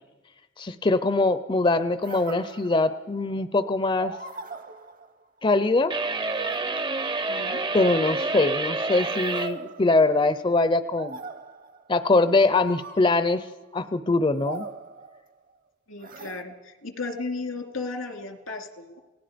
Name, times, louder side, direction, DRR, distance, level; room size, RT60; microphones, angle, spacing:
voice 1, 0.6-4.1 5.4-5.9 7.7-11.2 11.9-13.4 13.7-14.6, left 2 dB, 25° left, 13 dB, 0.6 m, -22 dB
sound 1, 2.0-3.2 4.0-5.4 6.2-7.6 8.9-10.5 11.0-11.9 12.6-13.5 14.3-15.5 16.0-16.4, right 4 dB, 45° right, 0.9 m, -40 dB
sound 2, 5.9-9.5, right 3 dB, 25° right, 0.6 m, -28 dB
voice 2, 7.3-7.6 15.9-19.0, left 3 dB, 90° left, 5 dB, 2.7 m, -35 dB
28.5 x 18.0 x 5.1 m, 1.2 s
head